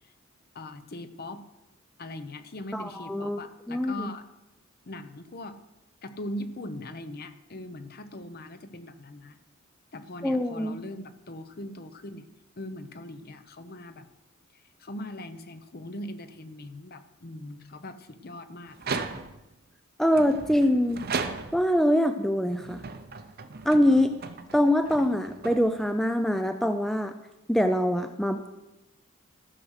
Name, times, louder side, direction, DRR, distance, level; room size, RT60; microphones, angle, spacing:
voice 1, 0.5-1.4 2.0-4.2 4.8-5.6 6.0-9.4 9.9-12.3 12.6-14.0 14.8-18.8, left 1 dB, 45° left, 11 dB, 0.8 m, -40 dB
voice 2, 2.7-3.4 3.7-4.1 10.2-10.8 20.0-21.0 21.5-22.8 23.7-24.1 24.5-27.1 27.5-28.5, left 1 dB, ahead, 7 dB, 0.4 m, -24 dB
sound 1, 18.7-19.5 20.1-21.8 22.5-26.0, right 4 dB, 45° right, 0.7 m, -36 dB
14.0 x 6.3 x 6.4 m, 0.98 s
head